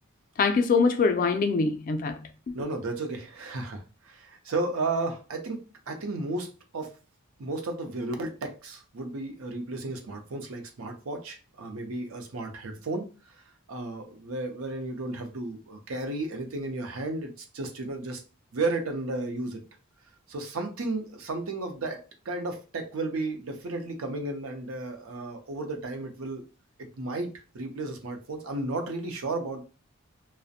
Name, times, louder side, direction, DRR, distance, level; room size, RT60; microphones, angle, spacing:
voice 1, 0.4-2.5, left 4 dB, 40° left, 0.3 m, -24 dB
voice 2, 2.5-7.0 7.4-13.1 13.3-13.4 13.7-18.2 18.5-19.6 20.3-22.0 22.2-26.4 26.8-29.6, right 2 dB, 90° right, 0.6 m, -33 dB
2.4 x 2.0 x 2.6 m
head